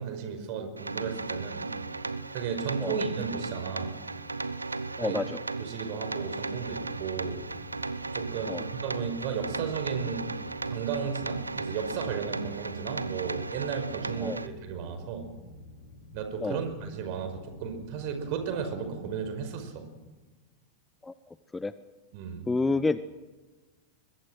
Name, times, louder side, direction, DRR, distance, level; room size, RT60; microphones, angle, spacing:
voice 1, 0.0-1.7 2.3-4.0 5.0-5.2 5.6-7.4 8.1-10.3 10.7-15.3 16.1-19.9 22.1-22.5, right 6 dB, 45° right, 8 dB, 5.0 m, -34 dB
sound 1, 0.8-14.5, right 3 dB, 80° right, 0.9 m, -36 dB
voice 2, 5.0-5.4 8.5-8.6 14.2-14.4 16.4-16.6 21.0-21.1 21.5-21.7 22.5-23.0, left 3 dB, 10° left, 15 dB, 0.7 m, -28 dB
sound 2, 6.5-19.4, left 3 dB, 65° left, 3.3 m, -49 dB
22.5 x 22.0 x 6.3 m, 1.3 s
figure-of-eight pair, 90°, 0 cm